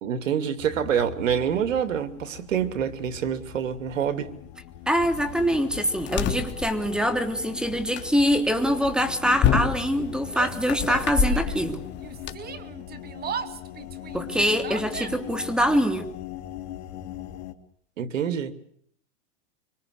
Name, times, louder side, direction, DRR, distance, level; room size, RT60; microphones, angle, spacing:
voice 1, 0.0-4.3 18.0-18.5, right 8 dB, 85° right, 3.0 m, -26 dB
sound 1, 0.6-17.5, left 12 dB, 55° left, 2.9 m, -41 dB
voice 2, 4.9-11.8 14.1-16.1, equal, ahead, 3.2 m, -24 dB
sound 2, 5.0-12.3, left 7 dB, 30° left, 3.6 m, -29 dB
Yell, 10.2-11.7 12.0-15.4, right 7 dB, 25° right, 2.3 m, -37 dB
26.0 x 26.0 x 6.6 m
hypercardioid pair, 130°, 38 cm